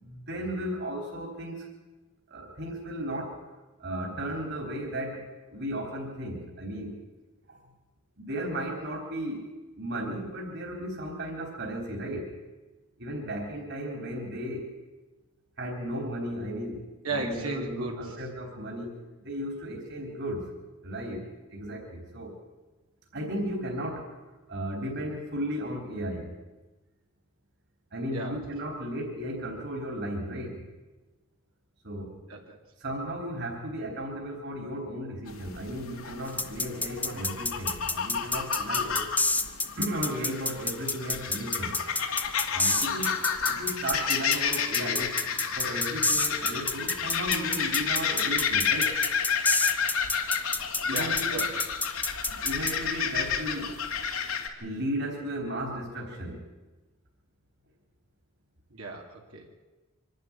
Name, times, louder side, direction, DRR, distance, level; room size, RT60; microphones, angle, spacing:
voice 1, 0.0-1.6 2.3-3.3 3.8-5.2 5.5-7.0 8.2-9.4 9.8-12.3 13.0-14.7 15.6-16.8 17.1-18.9 19.2-20.4 20.8-21.2 21.5-22.3 23.1-24.1 24.5-26.3 27.9-30.6 31.8-32.2 32.8-39.0 39.8-41.8 42.5-43.1 43.6-45.1 45.6-48.9 50.9-51.4 52.4-53.7 54.6-56.4, equal, 55° right, 1 dB, 3.9 m, -34 dB
voice 2, 17.0-18.2 28.1-28.4 32.3-32.6 50.8-51.6 58.7-59.5, right 2 dB, 75° right, 0 dB, 2.8 m, -35 dB
sound 1, 35.3-54.5, left 6 dB, 75° left, 2.4 m, -31 dB
sound 2, 36.4-52.7, left 2 dB, 10° left, 0.8 m, -28 dB
25.0 x 12.0 x 9.9 m, 1.2 s
head